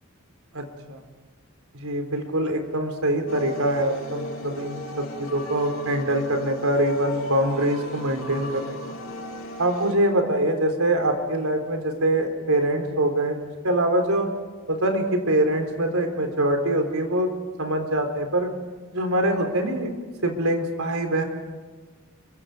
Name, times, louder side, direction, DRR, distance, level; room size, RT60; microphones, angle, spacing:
voice 1, 0.5-1.0 1.7-9.0 9.6-13.4 13.6-14.3 14.7-17.3 17.6-18.5 18.9-19.9 20.2-21.2, right 1 dB, 80° right, 5 dB, 3.9 m, -24 dB
sound 1, 3.3-9.9, left 1 dB, 65° left, 4.5 m, -37 dB
29.5 x 23.5 x 5.1 m, 1.4 s
head